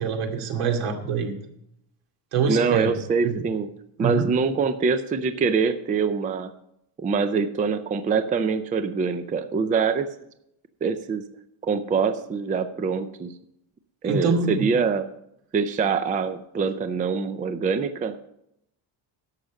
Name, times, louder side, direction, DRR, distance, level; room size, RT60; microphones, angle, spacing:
voice 1, 0.0-1.4 2.3-3.0 3.2-3.4 4.0-4.3 14.0-14.6, right 5 dB, 80° right, 3 dB, 2.5 m, -25 dB
voice 2, 2.5-3.7 4.0-6.5 7.0-10.1 10.8-11.3 11.6-13.3 14.0-15.1 15.5-18.2, right 5 dB, 20° right, 10 dB, 0.4 m, -24 dB
11.5 x 7.0 x 6.3 m, 0.78 s
cardioid pair, 155°, 48 cm